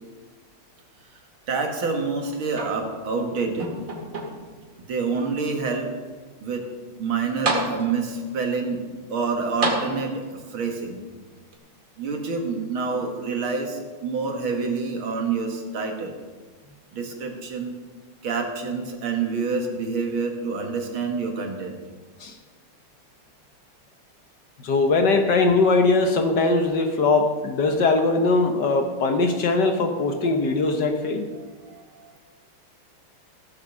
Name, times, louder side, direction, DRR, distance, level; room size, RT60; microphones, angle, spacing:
voice 1, 1.5-3.8 4.9-5.9 6.4-6.6 7.0-8.8 9.1-11.0 12.0-16.1 16.9-17.8 18.2-21.8 31.0-32.2, right 4 dB, 70° right, 3 dB, 2.3 m, -27 dB
sound 1, 2.5-3.2 3.6-4.6 5.3-5.4 7.0-7.1 7.4-8.2 9.6-10.5 11.5-11.6, right 2 dB, 40° right, 2.2 m, -29 dB
voice 2, 24.6-31.3, left 3 dB, 60° left, 4 dB, 1.5 m, -21 dB
15.5 x 7.2 x 6.6 m, 1.4 s
omnidirectional pair, 2.4 m